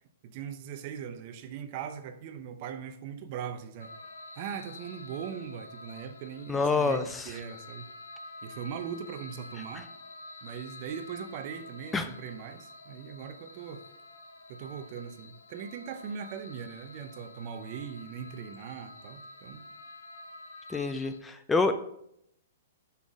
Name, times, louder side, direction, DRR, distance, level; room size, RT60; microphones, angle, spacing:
voice 1, 0.2-3.9 4.4-7.9 8.4-9.9 10.4-13.8 14.5-19.6, right 7 dB, 45° right, 9 dB, 0.7 m, -40 dB
sound 1, 3.8-21.2, left 2 dB, 80° left, 1.1 m, -48 dB
voice 2, 6.5-7.4 9.7-9.8 11.9-12.1 20.7-21.7, left 4 dB, 10° left, 9 dB, 0.5 m, -27 dB
6.1 x 5.7 x 4.8 m, 0.73 s
figure-of-eight pair, 115°, 0 cm